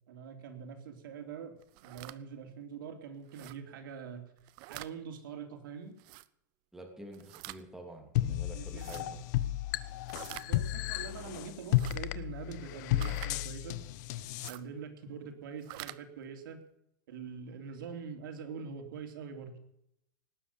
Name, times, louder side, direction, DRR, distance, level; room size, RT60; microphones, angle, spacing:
voice 1, 0.1-4.2 4.7-6.0 8.5-9.2 10.2-13.8 14.5-16.6 17.1-19.5, right 6 dB, 90° right, 5 dB, 3.2 m, -44 dB
sound 1, 1.6-2.2 3.3-3.6 4.4-4.9 6.0-6.3 7.1-7.6 8.7-9.0 10.1-10.5 11.6-12.0 13.0-13.3 14.3-14.6 15.5-16.0, right 20 dB, 45° right, 0.6 m, -46 dB
voice 2, 6.7-9.2, right 1 dB, 5° right, 2 dB, 2.9 m, -48 dB
sound 2, 8.2-14.5, left 14 dB, 55° left, 1.0 m, -33 dB
19.0 x 9.9 x 7.1 m, 0.78 s
supercardioid pair, 155°, 11 cm